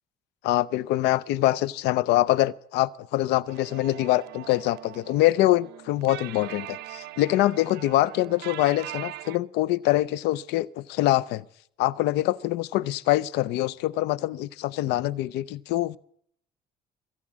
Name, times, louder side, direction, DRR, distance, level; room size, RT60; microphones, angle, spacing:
voice 1, 0.4-11.4 11.8-16.0, left 16 dB, 90° left, 0.5 m, -24 dB
sound 1, 3.5-9.4, right 16 dB, 80° right, 0.6 m, -41 dB
23.0 x 8.5 x 7.3 m
cardioid pair, 110°, 17 cm